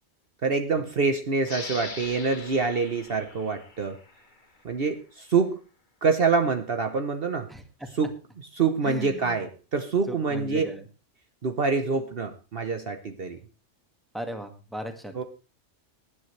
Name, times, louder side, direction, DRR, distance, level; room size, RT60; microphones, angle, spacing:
voice 1, 0.4-4.0 4.6-5.6 6.0-7.5 8.0-10.7 11.4-13.4 15.1-15.2, right 4 dB, 55° right, 7 dB, 1.2 m, -26 dB
sound 1, 1.4-4.7, left 4 dB, 40° left, 1.4 m, -42 dB
voice 2, 7.5-7.9 8.8-9.4 10.1-10.8 14.1-15.2, equal, ahead, 5 dB, 1.8 m, -37 dB
19.0 x 10.5 x 3.3 m, 0.32 s
omnidirectional pair, 1.2 m